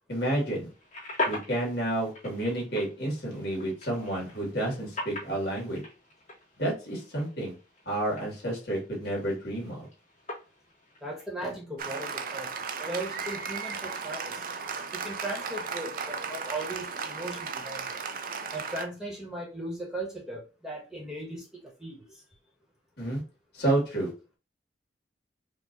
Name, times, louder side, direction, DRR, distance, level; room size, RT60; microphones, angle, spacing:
voice 1, 0.1-0.7 1.3-5.8 6.6-7.6 7.9-9.9 23.0-23.2 23.5-24.1, right 1 dB, 55° left, -2 dB, 2.2 m, -30 dB
sound 1, 0.7-11.3, left 2 dB, 40° left, 2.4 m, -41 dB
voice 2, 11.0-12.5 12.8-14.4 14.9-18.0 18.5-21.5 21.8-22.2, right 1 dB, 5° right, -3 dB, 1.5 m, -37 dB
Applause, 11.8-18.9, right 5 dB, 45° right, 0.4 m, -35 dB
5.1 x 2.7 x 2.7 m, 0.32 s
head